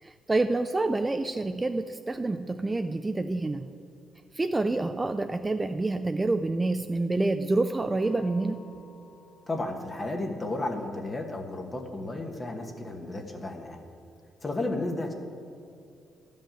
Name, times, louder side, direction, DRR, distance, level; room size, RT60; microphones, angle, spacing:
voice 1, 0.0-3.7 4.3-8.6, right 2 dB, 20° right, 8 dB, 0.4 m, -27 dB
Acoustic guitar, 8.0-11.3, left 2 dB, 90° left, 1.0 m, -54 dB
voice 2, 9.5-13.8 14.4-15.1, left 2 dB, 25° left, 3 dB, 1.3 m, -33 dB
11.5 x 5.4 x 8.9 m, 2.5 s
cardioid pair, 90°, 0 cm